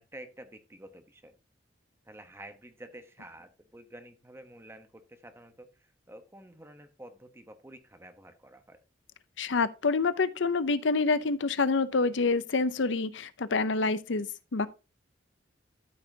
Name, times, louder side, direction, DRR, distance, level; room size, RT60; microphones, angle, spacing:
voice 1, 0.0-1.3 2.0-8.8, right 1 dB, 15° right, 1.0 m, -50 dB
voice 2, 9.4-14.7, left 4 dB, 70° left, 0.6 m, -27 dB
13.0 x 5.8 x 2.8 m
head